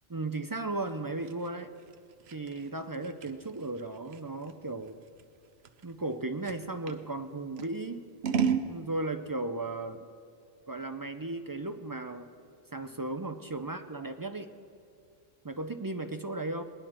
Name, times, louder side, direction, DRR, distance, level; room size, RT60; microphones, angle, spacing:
voice 1, 0.1-1.7 2.3-5.0 5.8-8.0 8.7-10.1 10.7-12.3 12.7-14.5 15.4-16.6, right 2 dB, 35° right, 7 dB, 0.3 m, -35 dB
Scissors, 0.9-7.0 7.6-8.7, right 7 dB, 80° right, 0.9 m, -34 dB
19.5 x 10.5 x 4.4 m, 2.5 s
omnidirectional pair, 1.0 m